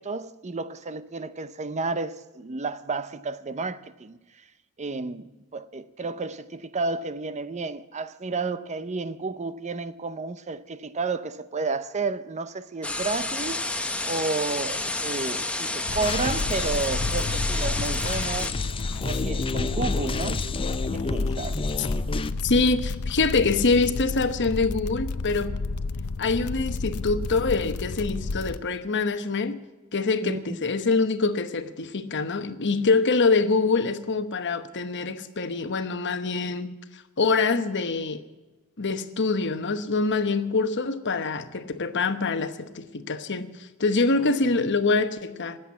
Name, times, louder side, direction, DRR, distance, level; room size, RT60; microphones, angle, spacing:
voice 1, 0.0-4.2 4.8-13.6 14.0-18.5 19.0-20.5 20.9-21.6 30.2-30.6, right 3 dB, 30° right, 0.6 m, -31 dB
sound 1, 12.8-18.5, left 2 dB, 5° left, 1.2 m, -30 dB
sound 2, 15.9-28.6, left 3 dB, 75° left, 0.6 m, -32 dB
sound 3, 16.0-22.3, left 3 dB, 25° left, 0.6 m, -30 dB
voice 2, 22.4-25.6 26.2-29.6 29.9-38.2 38.8-45.6, left 3 dB, 55° left, 1.1 m, -25 dB
20.5 x 8.0 x 8.2 m
head